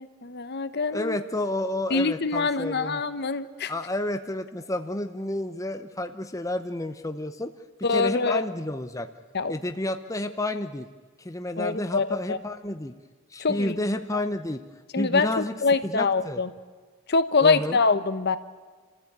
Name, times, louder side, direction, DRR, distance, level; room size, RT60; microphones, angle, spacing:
voice 1, 0.0-1.2 1.9-3.7 7.8-8.4 9.3-9.6 11.6-12.4 13.4-13.7 14.9-16.5 17.1-18.4, left 4 dB, 45° left, 12 dB, 0.9 m, -24 dB
voice 2, 0.9-3.0 3.7-7.5 7.9-9.1 9.5-10.9 11.2-12.9 13.3-14.6 15.0-15.5 15.8-16.4 17.4-17.8, left 1 dB, 15° left, 8 dB, 0.8 m, -30 dB
29.5 x 14.5 x 8.7 m, 1.5 s
head